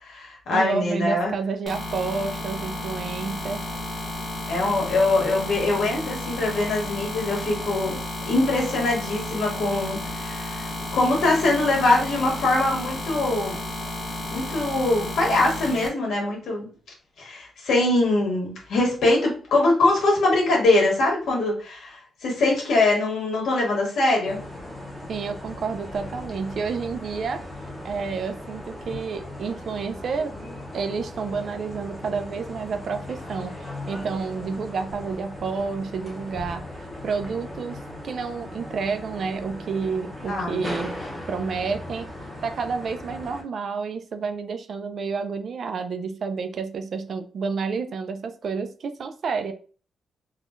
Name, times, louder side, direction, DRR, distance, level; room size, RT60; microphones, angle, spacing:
voice 1, 0.0-1.3 4.5-13.6 14.3-16.7 17.2-24.4 40.2-40.6, left 2 dB, 75° left, -2 dB, 1.4 m, -23 dB
voice 2, 0.5-3.6 25.1-27.4 27.8-30.3 30.7-37.8 38.0-41.0 41.3-42.1 42.4-49.5, right 5 dB, 50° right, 9 dB, 0.3 m, -30 dB
sound 1, 1.7-15.9, left 1 dB, 40° left, 0.9 m, -32 dB
sound 2, 24.3-43.4, left 1 dB, 5° left, 0.7 m, -38 dB
3.5 x 2.2 x 2.4 m, 0.39 s
wide cardioid pair, 145°, 0 cm